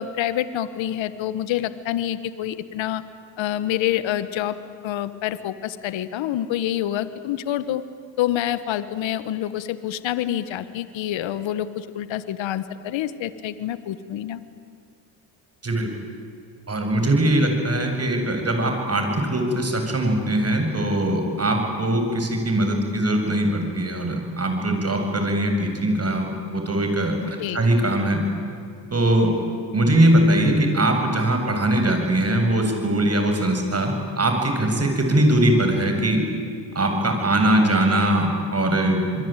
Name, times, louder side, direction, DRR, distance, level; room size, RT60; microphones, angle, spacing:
voice 1, 0.0-3.0 3.4-4.6 4.8-7.8 8.2-14.4 27.2-27.6, left 12 dB, 65° left, 13 dB, 1.5 m, -27 dB
voice 2, 16.7-28.2 28.9-29.3 29.7-36.2 36.7-39.3, right 1 dB, 30° right, 4 dB, 7.8 m, -21 dB
27.5 x 22.5 x 9.3 m, 2.3 s
supercardioid pair, 70°, 48 cm